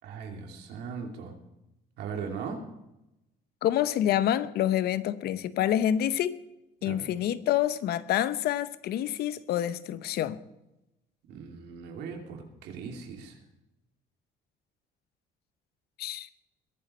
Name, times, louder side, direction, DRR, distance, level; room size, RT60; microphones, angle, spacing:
voice 1, 0.0-1.3 2.0-2.6 6.8-7.1 11.3-13.4, right 6 dB, 80° right, 2.7 m, -39 dB
voice 2, 3.6-6.4 6.8-10.4 16.0-16.3, left 11 dB, 70° left, 0.8 m, -27 dB
22.0 x 11.5 x 4.3 m
cardioid pair, 110°, 17 cm